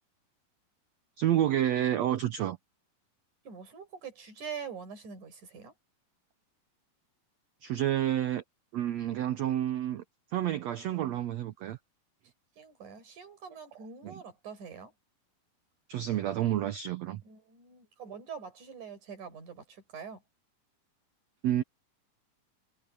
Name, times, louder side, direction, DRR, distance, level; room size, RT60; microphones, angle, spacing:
voice 1, 1.2-2.6 7.6-8.4 8.7-10.0 10.3-11.8 14.0-14.1 15.9-17.2 21.4-21.6, right 12 dB, 90° right, 1.5 m, -29 dB
voice 2, 3.4-5.7 12.6-14.9 17.2-20.2, right 6 dB, 55° right, 6.2 m, -44 dB
omnidirectional pair, 4.2 m